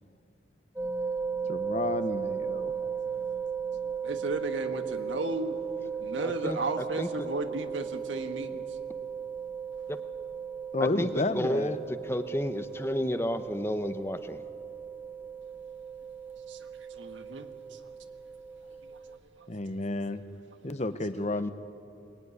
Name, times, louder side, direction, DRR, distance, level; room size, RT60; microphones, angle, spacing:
sound 1, 0.8-19.2, right 6 dB, 10° right, 1.6 m, -36 dB
voice 1, 1.5-2.7 10.7-11.8 19.5-20.2 20.6-21.5, left 2 dB, 35° left, 11 dB, 0.9 m, -31 dB
voice 2, 4.0-5.5 6.0-8.6 16.5-16.6 16.9-17.8 18.9-19.0, right 2 dB, 90° right, 6 dB, 1.7 m, -34 dB
voice 3, 6.2-6.6 7.0-7.1 9.9-10.0 10.8-11.8 12.0-14.4 21.3-21.5, left 1 dB, 15° left, 10 dB, 0.8 m, -31 dB
22.5 x 21.0 x 9.7 m, 2.8 s
head